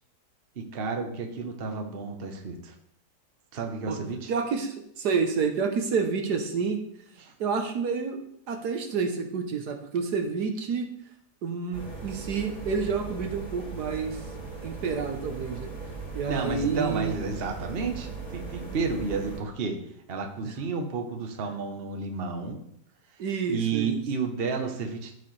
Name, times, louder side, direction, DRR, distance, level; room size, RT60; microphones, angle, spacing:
voice 1, 0.6-2.7 3.5-4.3 7.2-7.3 16.3-19.8 20.1-22.6 23.5-25.1, right 4 dB, 40° right, 4 dB, 1.1 m, -31 dB
voice 2, 4.3-6.8 7.4-8.2 8.5-10.9 11.4-14.2 14.6-15.7 16.1-17.1 20.4-20.5 23.2-24.0, right 5 dB, 70° right, 5 dB, 1.6 m, -29 dB
sound 1, 11.7-19.4, right 4 dB, 45° left, 5.0 m, -38 dB
13.5 x 6.4 x 3.3 m, 0.71 s
omnidirectional pair, 1.8 m